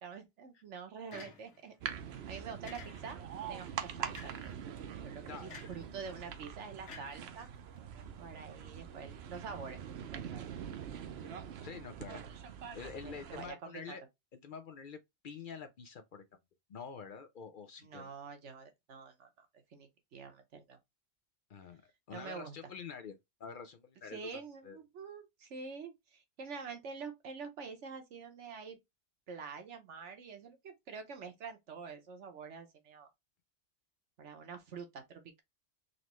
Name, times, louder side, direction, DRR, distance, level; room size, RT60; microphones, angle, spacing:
voice 1, 0.0-1.7 2.3-4.6 5.0-7.5 8.2-9.8 10.1-10.5 12.1-12.4 13.0-14.0 17.8-20.8 22.1-22.5 24.1-28.8 29.3-33.1 34.2-35.4, right 5 dB, 85° right, 1.3 m, -47 dB
sound 1, 1.1-1.8 2.7-3.3 4.1-4.6 5.5-5.9 6.9-7.8, left 5 dB, 80° left, 1.4 m, -51 dB
sound 2, 1.8-13.5, right 8 dB, 65° right, 0.9 m, -44 dB
voice 2, 11.0-11.4 11.6-12.2 12.7-14.0 14.3-16.2 16.7-18.1 21.5-21.8 22.1-24.8, left 6 dB, 55° left, 0.6 m, -47 dB
4.0 x 3.1 x 3.0 m
omnidirectional pair, 1.2 m